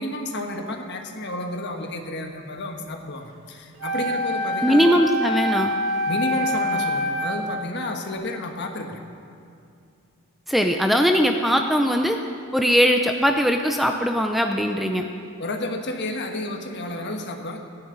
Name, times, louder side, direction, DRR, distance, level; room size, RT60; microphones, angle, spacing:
voice 1, 0.0-5.0 6.1-9.0 15.4-17.6, left 1 dB, 50° left, 4 dB, 1.3 m, -31 dB
Wind instrument woodwind instrument, 3.8-7.6, left 1 dB, 80° right, 2.2 m, -26 dB
voice 2, 4.6-5.8 10.5-12.2 12.5-15.0, equal, ahead, 4 dB, 0.5 m, -20 dB
24.5 x 10.5 x 4.0 m, 2.5 s
head